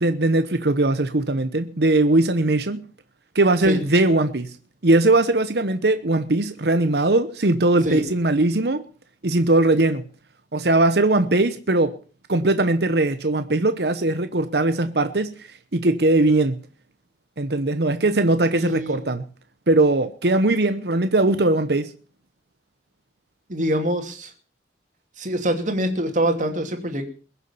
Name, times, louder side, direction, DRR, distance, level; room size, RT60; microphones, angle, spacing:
voice 1, 0.0-2.8 3.3-4.6 4.8-8.9 9.2-10.0 10.5-12.0 12.3-16.6 17.4-19.3 19.7-21.9, right 2 dB, 60° right, 1.0 m, -20 dB
voice 2, 18.5-19.0 23.5-24.3 25.2-27.1, right 1 dB, 45° right, 2.6 m, -24 dB
21.5 x 7.4 x 7.1 m
head